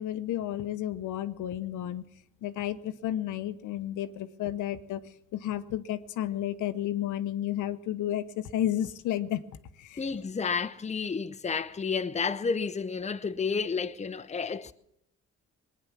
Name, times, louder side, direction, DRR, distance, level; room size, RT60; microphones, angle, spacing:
voice 1, 0.0-2.0 2.4-5.0 5.3-8.2 8.5-9.4 9.8-10.0, left 12 dB, 85° left, 0.9 m, -32 dB
voice 2, 10.0-14.7, left 5 dB, 25° left, 0.8 m, -31 dB
20.5 x 9.7 x 7.2 m
cardioid pair, 90°, 30 cm